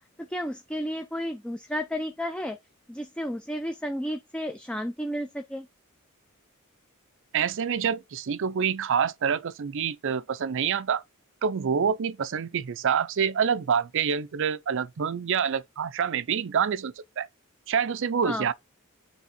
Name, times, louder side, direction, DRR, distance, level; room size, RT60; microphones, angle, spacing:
voice 1, 0.3-2.6 2.9-5.7 18.2-18.5, equal, 5° left, 0.4 m, -32 dB
voice 2, 7.3-11.0 11.4-17.3 17.7-18.5, right 7 dB, 60° right, 0.5 m, -27 dB
8.2 x 3.4 x 4.2 m
head